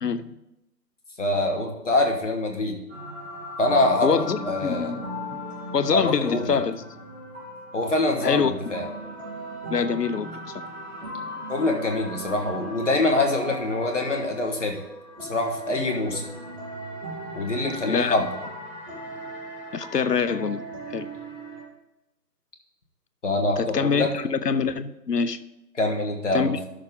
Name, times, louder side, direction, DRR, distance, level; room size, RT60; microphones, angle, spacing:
voice 1, 0.0-0.4 4.0-5.0 5.7-6.8 8.2-8.5 9.7-10.6 17.9-18.3 19.7-20.6 20.9-21.1 23.6-25.4 26.3-26.6, left 6 dB, 70° left, 0.7 m, -25 dB
voice 2, 1.2-2.8 3.6-4.2 4.4-4.9 5.9-6.6 7.7-8.9 11.5-14.8 15.2-16.2 17.3-18.3 23.2-24.1 25.7-26.6, left 2 dB, 45° left, 1.5 m, -24 dB
sound 1, 2.9-21.6, right 1 dB, 40° right, 3.1 m, -37 dB
11.5 x 6.5 x 3.8 m
figure-of-eight pair, 155°, 49 cm